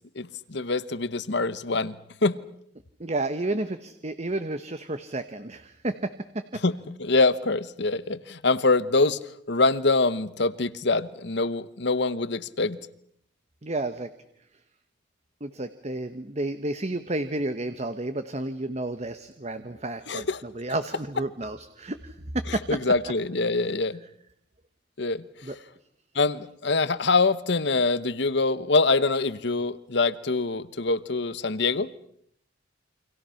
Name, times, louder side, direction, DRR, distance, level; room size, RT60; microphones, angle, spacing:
voice 1, 0.1-2.0 2.2-2.5 6.6-9.2 9.5-12.8 20.1-20.4 22.5-24.0 25.0-25.2 26.1-31.9, left 3 dB, 60° left, 1.1 m, -24 dB
voice 2, 3.0-6.6 13.6-14.1 15.4-22.8 25.4-25.6, right 2 dB, 35° right, 1.1 m, -31 dB
29.0 x 25.5 x 5.8 m
head